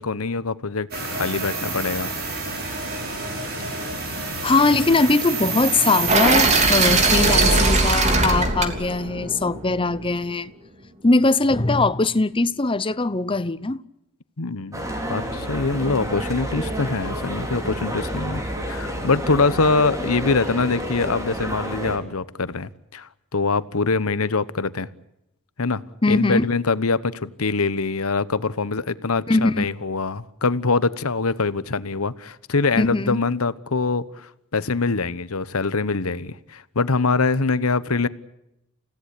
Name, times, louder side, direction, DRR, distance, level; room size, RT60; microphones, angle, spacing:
voice 1, 0.0-2.1 14.4-18.4 18.7-24.9 25.6-25.8 26.1-38.1, left 4 dB, 85° left, 1.1 m, -24 dB
sound 1, 0.9-7.6, right 3 dB, 50° right, 6.6 m, -28 dB
voice 2, 4.4-10.5 11.0-13.8 26.0-26.5 29.3-29.6 32.8-33.2, left 3 dB, 25° left, 0.8 m, -21 dB
sound 2, 6.1-10.1, right 3 dB, 35° right, 3.2 m, -20 dB
sound 3, 14.7-22.0, right 1 dB, 15° right, 4.1 m, -29 dB
29.5 x 16.5 x 8.4 m
head